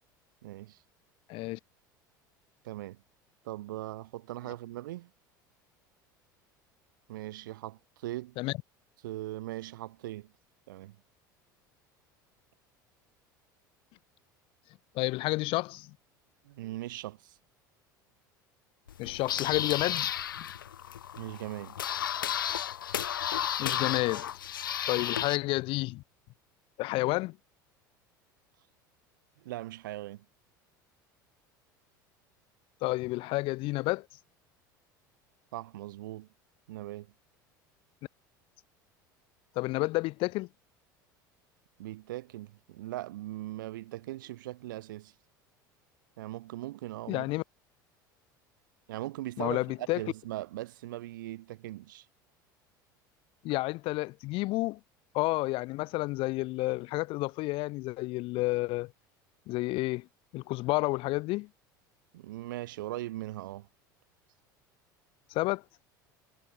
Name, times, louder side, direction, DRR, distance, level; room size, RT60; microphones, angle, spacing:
voice 1, 0.4-0.8 2.6-3.0 3.4-5.1 7.1-8.4 9.0-10.3 10.7-11.0 16.4-17.4 21.2-21.8 29.4-30.2 35.5-36.3 36.7-37.1 41.8-45.1 46.2-47.3 48.9-52.1 62.1-63.7, right 16 dB, 75° right, 2.7 m, -40 dB
voice 2, 1.3-1.6 8.4-8.5 14.9-15.9 19.0-20.1 20.4-20.5 23.6-24.3 24.9-26.0 26.8-27.4 32.8-34.1 39.5-40.5 47.1-47.4 49.4-50.0 53.4-54.8 55.1-58.9 59.5-60.1 60.3-61.5 65.3-65.6, left 21 dB, 55° left, 1.3 m, -30 dB
sound 1, 18.9-25.4, left 10 dB, 80° left, 2.5 m, -33 dB
hypercardioid pair, 75°, 11 cm